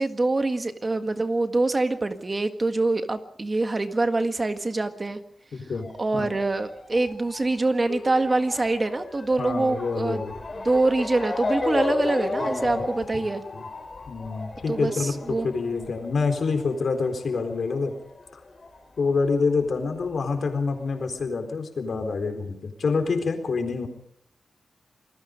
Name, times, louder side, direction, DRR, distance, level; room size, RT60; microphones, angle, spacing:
voice 1, 0.0-5.2 6.0-10.2 10.6-13.4 14.7-15.5 15.8-15.9, right 2 dB, 25° right, 8 dB, 1.7 m, -25 dB
voice 2, 5.5-5.9 6.2-6.3 9.4-10.4 12.4-12.9 13.5-13.6 14.1-17.9 18.3-18.4 19.0-23.9, left 4 dB, 60° left, 6 dB, 4.0 m, -27 dB
Motor vehicle (road) / Siren, 5.8-18.8 19.0-20.2 20.9-21.0 21.2-21.3, left 2 dB, 35° left, 4.3 m, -33 dB
27.5 x 20.0 x 5.2 m, 0.68 s
wide cardioid pair, 135°, 0 cm